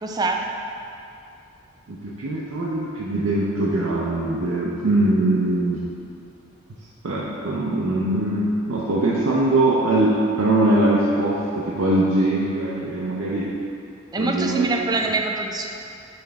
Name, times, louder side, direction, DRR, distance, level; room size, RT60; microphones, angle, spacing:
voice 1, 0.0-0.5 14.1-15.7, right 3 dB, 20° right, 2 dB, 0.3 m, -24 dB
voice 2, 1.9-5.8 7.0-13.5 14.2-14.7, right 1 dB, 85° right, -6 dB, 0.6 m, -22 dB
5.5 x 3.4 x 5.3 m, 2.6 s
head